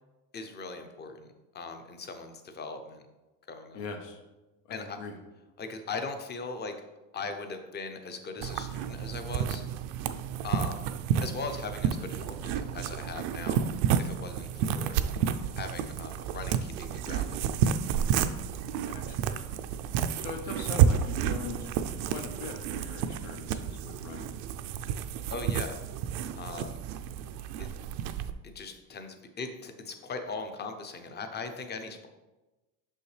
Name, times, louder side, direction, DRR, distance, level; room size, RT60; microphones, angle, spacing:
voice 1, 0.3-1.3 1.5-3.0 3.5-3.8 4.7-5.0 5.6-6.7 7.1-9.6 10.4-10.9 11.2-13.6 14.0-14.9 15.6-17.4 25.3-25.8 26.4-26.8 27.6-27.7 28.4-32.1, left 4 dB, 20° left, 7 dB, 0.6 m, -39 dB
voice 2, 3.7-4.2 4.6-5.1 18.2-18.4 18.9-19.4 20.2-21.7 22.0-24.4, left 5 dB, 75° left, 5 dB, 1.2 m, -41 dB
sound 1, 8.4-28.3, right 8 dB, 70° right, 0.6 m, -30 dB
6.2 x 5.5 x 3.3 m, 1.1 s
cardioid pair, 125°, 47 cm